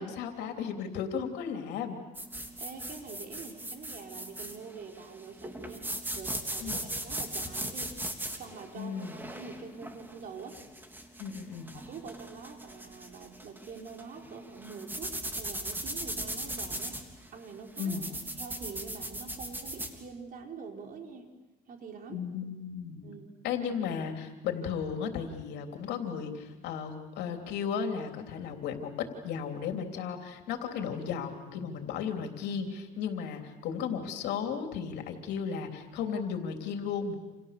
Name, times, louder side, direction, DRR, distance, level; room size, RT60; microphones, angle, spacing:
voice 1, 0.0-2.0 6.6-6.9 8.7-9.2 11.2-11.7 17.8-18.1 22.1-23.1 23.4-37.1, left 7 dB, 85° left, 4 dB, 3.3 m, -35 dB
sound 1, 2.1-19.9, right 1 dB, 10° right, 3.4 m, -39 dB
voice 2, 2.6-5.9 6.1-8.0 8.3-10.6 11.7-18.0 18.4-21.3 21.7-22.2 23.0-23.3, right 5 dB, 55° right, 3 dB, 4.6 m, -45 dB
30.0 x 28.5 x 6.8 m, 1.0 s
cardioid pair, 110°, 17 cm